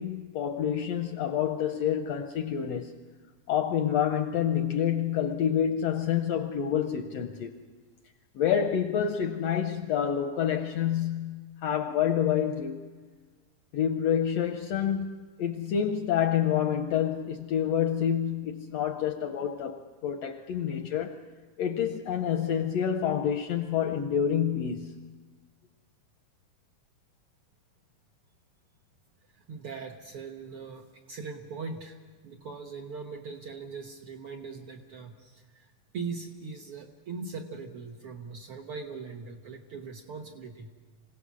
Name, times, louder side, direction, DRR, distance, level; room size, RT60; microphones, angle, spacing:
voice 1, 0.0-2.9 3.5-7.5 8.3-12.9 13.7-21.1 21.6-24.9, left 9 dB, 75° left, 1.6 m, -28 dB
voice 2, 29.5-32.0 32.2-35.7 35.9-40.7, right 4 dB, 60° right, 1.6 m, -40 dB
26.5 x 17.0 x 6.2 m
omnidirectional pair, 3.7 m